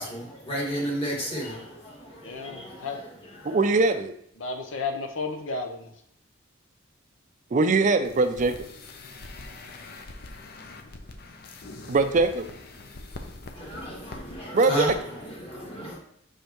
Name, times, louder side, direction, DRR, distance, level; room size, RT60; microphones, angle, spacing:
voice 1, 0.0-3.6 13.6-16.0, equal, 30° left, -4 dB, 2.0 m, -33 dB
voice 2, 2.2-3.0 4.4-5.9, left 4 dB, 80° left, 4 dB, 0.8 m, -33 dB
voice 3, 3.4-4.1 7.5-8.7 11.9-12.5 14.5-15.0, right 3 dB, 40° right, 8 dB, 0.4 m, -22 dB
sound 1, 8.0-14.4 14.7-14.9 15.2-15.3, left 2 dB, 50° left, 0.7 m, -43 dB
6.3 x 5.1 x 3.0 m, 0.70 s
head